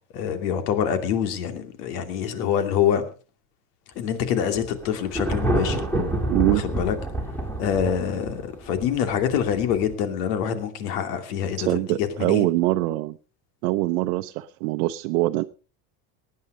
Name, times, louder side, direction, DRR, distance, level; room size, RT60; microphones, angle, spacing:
voice 1, 0.1-3.0 4.0-5.8 6.6-7.0 7.6-12.5, left 8 dB, 80° left, 8 dB, 2.8 m, -25 dB
Thunder, 4.5-9.9, right 1 dB, 5° left, 2.3 m, -28 dB
voice 2, 6.3-6.6 11.6-13.2 13.6-15.4, right 18 dB, 65° right, 6 dB, 0.8 m, -23 dB
18.5 x 9.6 x 4.9 m, 0.36 s
cardioid pair, 175°, 47 cm